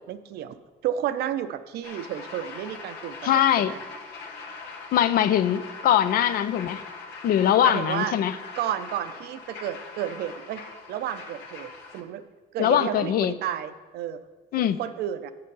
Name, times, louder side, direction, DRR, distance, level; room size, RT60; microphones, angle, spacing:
voice 1, 0.1-0.6 0.8-3.8 7.6-8.1 8.6-10.6 10.9-12.2 12.5-14.2 14.8-15.3, right 10 dB, 70° right, 11 dB, 0.5 m, -31 dB
sound 1, 1.8-12.0, left 4 dB, 85° left, 1.0 m, -42 dB
voice 2, 3.2-3.8 4.9-6.8 7.2-8.3 12.6-13.3 14.5-14.8, left 10 dB, 60° left, 13 dB, 0.5 m, -22 dB
7.4 x 6.7 x 5.4 m, 1.3 s
cardioid pair, 110°, 17 cm